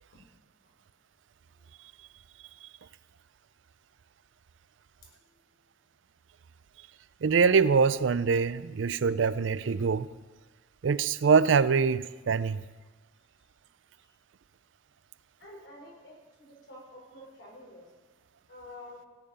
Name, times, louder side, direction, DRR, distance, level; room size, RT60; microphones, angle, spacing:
voice 1, 5.0-5.4 13.4-13.5 14.0-14.1 15.4-17.9 18.5-19.0, left 1 dB, 85° left, 4.1 m, -50 dB
voice 2, 7.2-10.1 10.8-12.6, right 5 dB, 90° right, 0.5 m, -24 dB
16.5 x 8.9 x 5.5 m
head